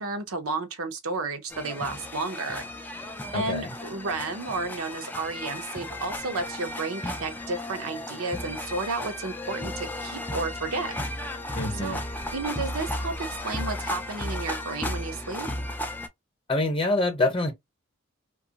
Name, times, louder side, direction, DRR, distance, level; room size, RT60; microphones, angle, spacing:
voice 1, 0.0-2.7 2.9-11.0 11.8-12.0 12.3-15.5, right 3 dB, 75° right, 0.7 m, -32 dB
sound 1, 1.5-16.1, left 1 dB, 10° left, 0.3 m, -35 dB
voice 2, 3.3-3.7 11.5-12.0 16.5-17.5, left 2 dB, 25° left, 0.8 m, -25 dB
2.9 x 2.3 x 2.8 m
head